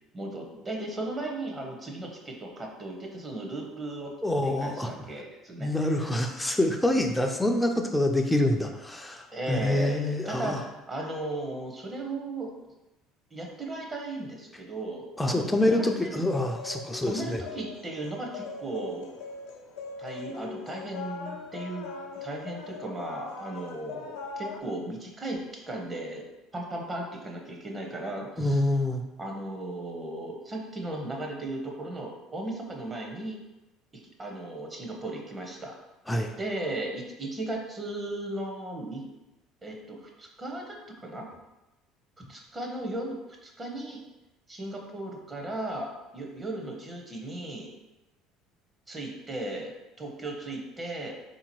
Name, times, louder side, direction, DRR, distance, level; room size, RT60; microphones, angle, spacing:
voice 1, 0.1-4.1 4.4-6.2 9.3-12.5 13.3-16.2 17.0-19.2 20.0-21.9 22.2-26.2 26.5-28.6 29.2-33.4 34.2-35.7 36.4-39.0 39.6-41.3 42.3-44.0 44.5-47.7 48.9-49.7 50.0-51.1, right 2 dB, 25° right, 1 dB, 0.8 m, -36 dB
voice 2, 4.2-4.9 5.6-10.6 15.2-17.4 28.4-29.0 36.1-36.3, left 1 dB, 10° left, 3 dB, 0.4 m, -26 dB
sound 1, 16.2-24.6, left 4 dB, 75° left, 0.5 m, -41 dB
3.6 x 2.8 x 3.0 m, 1.0 s
hypercardioid pair, 70°, 0 cm